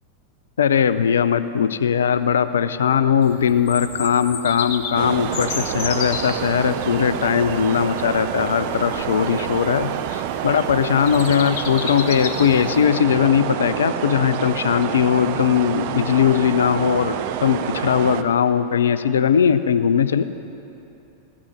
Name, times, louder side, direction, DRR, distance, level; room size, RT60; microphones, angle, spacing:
voice 1, 0.6-20.2, left 8 dB, 65° left, 12 dB, 0.4 m, -19 dB
Bird vocalization bird call bird song, 3.2-12.9, left 6 dB, 50° left, 1.2 m, -34 dB
sound 1, 5.0-18.2, right 11 dB, 50° right, 0.6 m, -28 dB
16.0 x 6.1 x 9.8 m, 3.0 s
figure-of-eight pair, 90°, 0 cm